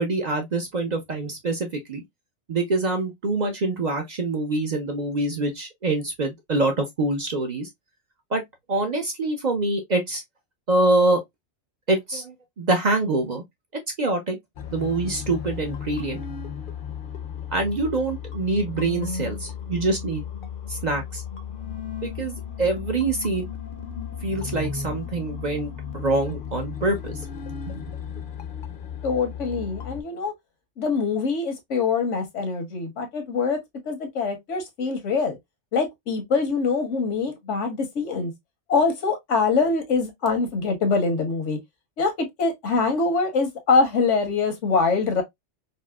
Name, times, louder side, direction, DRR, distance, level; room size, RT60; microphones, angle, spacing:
voice 1, 0.0-2.0 2.5-7.7 8.3-8.4 8.7-10.2 10.7-11.2 11.9-13.4 14.0-14.4 14.7-16.2 17.5-20.2 20.7-21.2 22.0-23.5 24.2-27.2 27.7-27.8, right 2 dB, 45° right, 0.6 m, -25 dB
sound 1, 14.6-30.0, left 7 dB, 55° left, 0.7 m, -35 dB
voice 2, 29.0-30.3 30.8-33.6 33.9-35.4 35.7-38.3 38.7-41.6 42.0-45.2, left 4 dB, 85° left, 1.3 m, -24 dB
4.1 x 2.0 x 2.2 m
omnidirectional pair, 1.2 m